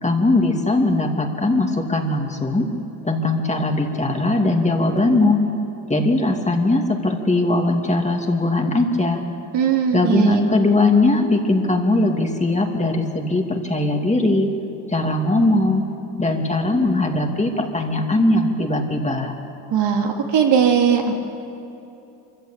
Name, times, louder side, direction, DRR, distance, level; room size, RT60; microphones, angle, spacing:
voice 1, 0.0-2.7 3.0-5.4 5.9-9.2 9.9-14.5 14.9-15.8 16.2-19.3, left 2 dB, 15° left, 2 dB, 2.5 m, -20 dB
voice 2, 9.5-10.4 19.7-21.2, right 7 dB, 65° right, 2 dB, 2.8 m, -19 dB
25.0 x 15.0 x 8.5 m, 2.8 s
cardioid pair, 90°, 46 cm